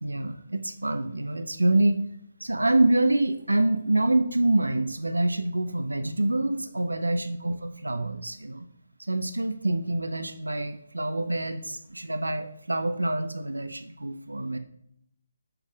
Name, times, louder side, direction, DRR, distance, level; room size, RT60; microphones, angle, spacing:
voice 1, 0.0-2.0 2.4-8.7 9.1-14.6, right 2 dB, 75° right, 8 dB, 0.3 m, -26 dB
5.4 x 2.4 x 3.5 m, 0.74 s
figure-of-eight pair, 145°, 0 cm